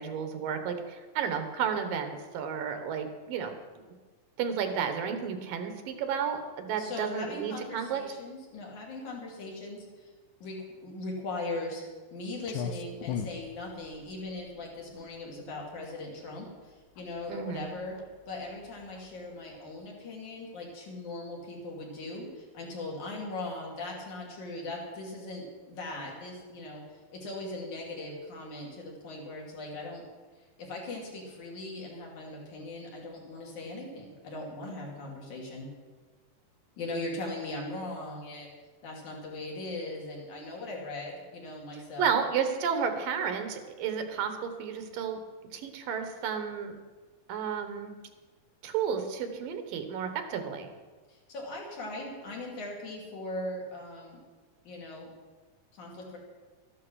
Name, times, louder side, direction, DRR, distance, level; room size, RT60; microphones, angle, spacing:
voice 1, 0.0-3.6 4.4-8.0 17.3-17.7 42.0-45.2 45.5-46.8 47.3-47.9 48.6-50.7, right 7 dB, 80° right, 7 dB, 2.9 m, -32 dB
voice 2, 6.7-10.1 10.4-11.8 12.1-18.0 18.3-26.8 27.1-30.1 30.6-35.7 36.8-38.5 38.8-42.2 51.1-54.2 54.7-55.1 55.7-56.2, left 2 dB, 60° left, -2 dB, 4.1 m, -39 dB
Clock, 12.4-19.9, left 7 dB, 85° left, 2.4 m, -41 dB
13.5 x 11.5 x 6.3 m, 1.4 s
omnidirectional pair, 3.9 m